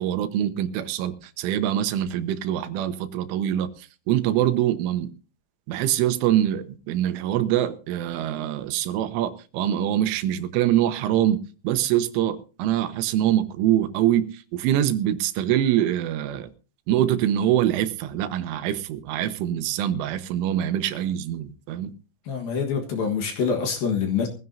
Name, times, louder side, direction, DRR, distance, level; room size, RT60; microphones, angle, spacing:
voice 1, 0.0-5.1 5.7-11.4 11.6-16.5 16.9-21.9, right 11 dB, 85° right, 3.4 m, -24 dB
voice 2, 22.3-24.3, left 6 dB, 60° left, 2.7 m, -25 dB
21.0 x 15.0 x 2.7 m
omnidirectional pair, 5.6 m